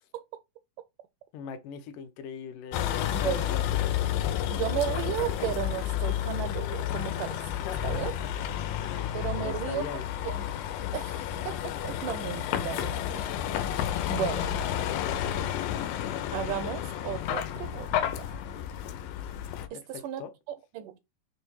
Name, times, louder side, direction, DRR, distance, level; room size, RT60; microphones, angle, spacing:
voice 1, 1.3-4.1 7.6-8.3 8.7-10.1 19.7-20.3, left 7 dB, 75° left, 2.3 m, -40 dB
Vehicle, 2.7-19.7, left 11 dB, 90° left, 2.5 m, -31 dB
voice 2, 3.1-3.5 4.5-7.4 7.8-8.1 9.1-10.5 10.9-11.2 11.5-13.2 14.1-14.6 16.3-18.6 19.7-20.2 20.7-21.0, right 11 dB, 80° right, 2.0 m, -34 dB
6.2 x 3.4 x 4.7 m
omnidirectional pair, 4.0 m